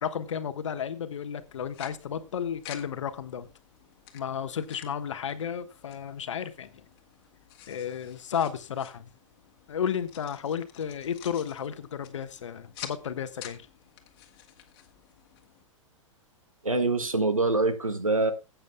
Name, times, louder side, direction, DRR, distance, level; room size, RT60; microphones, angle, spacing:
voice 1, 0.0-3.5 4.1-6.8 7.7-9.1 9.7-13.7, left 8 dB, 65° left, 1.3 m, -33 dB
sound 1, 1.4-15.6, left 11 dB, 45° left, 2.0 m, -50 dB
voice 2, 16.6-18.3, right 3 dB, 90° right, 1.6 m, -25 dB
18.5 x 8.8 x 2.2 m
figure-of-eight pair, 110°, 17 cm